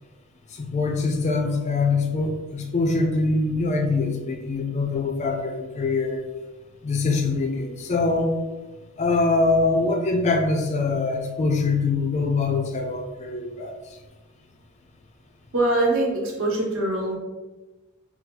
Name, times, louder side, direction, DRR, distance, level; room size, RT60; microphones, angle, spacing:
voice 1, 0.5-6.2 6.8-8.4 9.0-13.7, left 3 dB, 30° left, 3 dB, 0.4 m, -23 dB
voice 2, 15.5-17.2, right 2 dB, 65° right, -2 dB, 0.9 m, -23 dB
2.8 x 2.3 x 3.8 m, 1.2 s
head